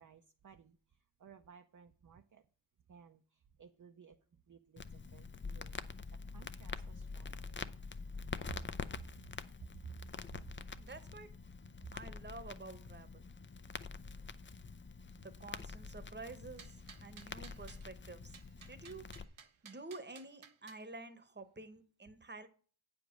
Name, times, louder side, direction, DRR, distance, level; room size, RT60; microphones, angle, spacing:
voice 1, 0.0-2.4 2.9-5.8 6.1-7.7 8.4-8.6 9.8-10.1 10.7-10.8 11.8-11.9, right 7 dB, 40° right, 6 dB, 0.6 m, -56 dB
Crackle, 4.8-19.2, left 4 dB, 25° left, 0.5 m, -46 dB
voice 2, 10.8-11.3 11.9-13.2 15.2-16.8 17.0-18.4 18.7-19.1 19.6-22.5, right 3 dB, 20° right, 11 dB, 1.0 m, -49 dB
sound 1, 16.6-17.9 18.3-20.8, right 6 dB, 80° right, 1.1 m, -57 dB
9.3 x 5.2 x 6.1 m, 0.40 s
wide cardioid pair, 150°, 47 cm